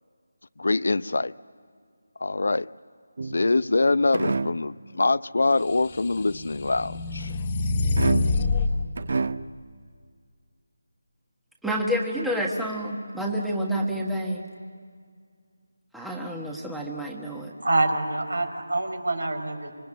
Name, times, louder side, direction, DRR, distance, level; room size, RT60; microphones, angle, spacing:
voice 1, 0.6-1.3 2.2-2.7 3.3-7.3, left 3 dB, 65° left, 17 dB, 0.6 m, -24 dB
sound 1, 3.2-3.7 4.1-4.7 8.0-8.6 9.0-9.6, right 3 dB, 50° right, 0.8 m, -28 dB
sound 2, 5.8-8.7, left 3 dB, 25° left, 1.6 m, -26 dB
voice 2, 11.6-14.4 15.9-17.5, equal, ahead, -2 dB, 1.4 m, -29 dB
voice 3, 17.6-19.7, right 2 dB, 85° right, 7 dB, 4.8 m, -26 dB
26.5 x 24.0 x 8.9 m, 2.1 s
figure-of-eight pair, 170°, 0 cm